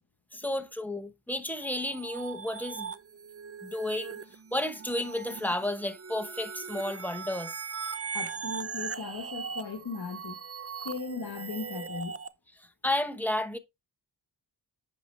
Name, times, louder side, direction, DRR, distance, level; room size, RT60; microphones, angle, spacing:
voice 1, 0.3-2.9 3.6-4.2 4.5-7.5 12.8-13.6, left 1 dB, 5° left, 0.9 m, -32 dB
sound 1, 1.6-12.3, right 6 dB, 30° right, 0.6 m, -40 dB
voice 2, 8.1-10.4 10.8-12.2, left 4 dB, 55° left, 1.1 m, -37 dB
8.3 x 6.2 x 3.1 m
wide cardioid pair, 110°, 45 cm